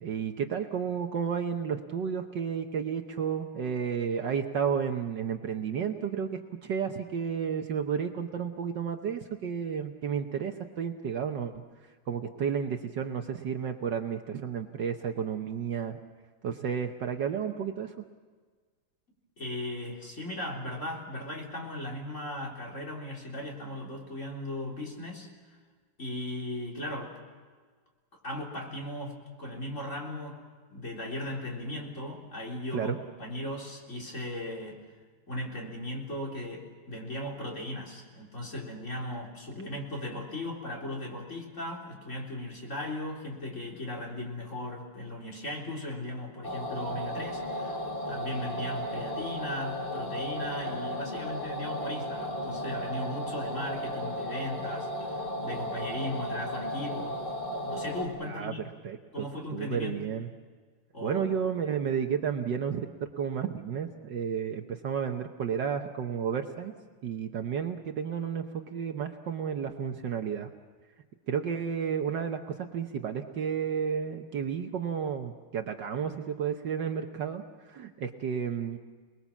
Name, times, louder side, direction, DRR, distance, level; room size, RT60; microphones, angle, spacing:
voice 1, 0.0-11.5 12.1-16.0 16.4-17.9 32.7-33.0 58.2-60.3 61.0-66.7 67.0-70.5 71.3-78.8, right 7 dB, 60° right, 5 dB, 1.5 m, -32 dB
voice 2, 19.4-25.3 26.0-27.1 28.2-30.4 30.7-34.8 35.3-57.2 57.6-58.6 59.1-60.0 60.9-61.4, left 1 dB, 35° left, -1 dB, 4.0 m, -37 dB
sound 1, 46.4-58.0, equal, 80° left, 4.0 m, -35 dB
28.5 x 20.5 x 7.2 m, 1.5 s
omnidirectional pair, 2.4 m